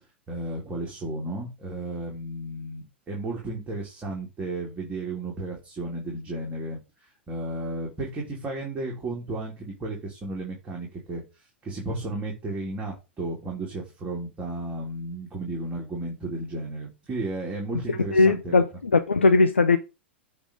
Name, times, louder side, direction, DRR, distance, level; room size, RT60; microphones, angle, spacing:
voice 1, 0.3-6.8 7.3-11.2 11.6-18.6, right 2 dB, 20° right, 2.9 m, -33 dB
voice 2, 18.1-19.8, left 3 dB, 80° left, 0.6 m, -19 dB
8.5 x 3.3 x 5.3 m
figure-of-eight pair, 100°, 6 cm